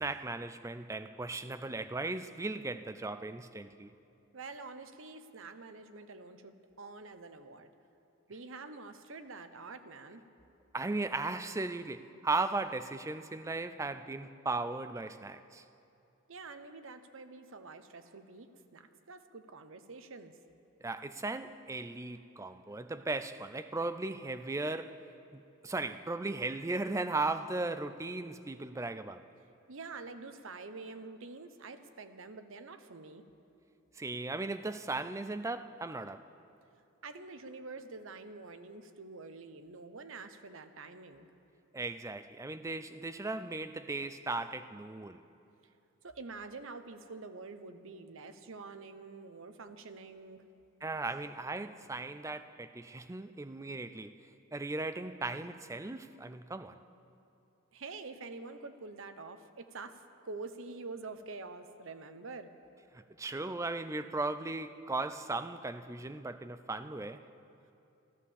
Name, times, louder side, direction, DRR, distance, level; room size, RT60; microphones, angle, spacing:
voice 1, 0.0-3.9 10.7-15.6 20.8-29.2 34.0-36.3 41.7-45.2 50.8-54.2 54.5-56.8 62.9-67.3, right 3 dB, 15° right, 0.4 m, -37 dB
voice 2, 4.3-7.7 8.3-10.3 16.3-20.4 29.7-33.2 37.0-41.3 46.0-50.4 57.7-62.5, right 3 dB, 65° right, 0.8 m, -47 dB
14.0 x 13.0 x 7.0 m
head